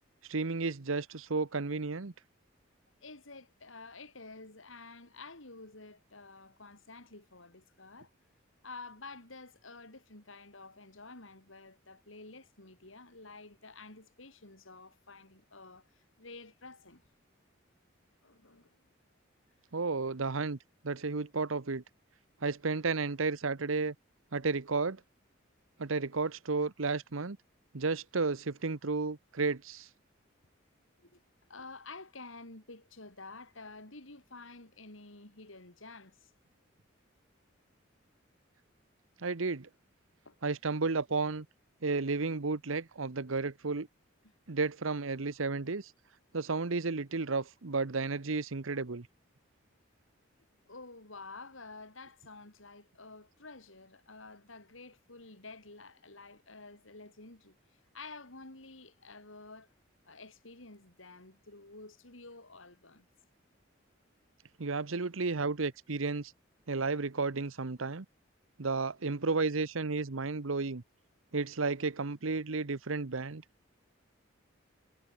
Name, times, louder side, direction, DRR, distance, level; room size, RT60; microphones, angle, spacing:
voice 1, 0.3-2.1 19.7-20.6 20.8-21.8 22.4-23.9 24.3-25.0 25.8-27.4 27.7-29.9 39.2-39.7 40.4-41.5 41.8-43.9 44.5-45.9 46.3-49.1 64.6-66.3 66.7-68.0 68.6-70.8 71.3-73.4, right 4 dB, 85° right, 1.0 m, -32 dB
voice 2, 3.0-8.1 8.6-17.0 18.2-18.8 31.0-31.2 31.5-36.3 40.2-40.4 44.2-44.3 50.7-59.7 60.0-63.1, left 3 dB, 80° left, 4.9 m, -50 dB
head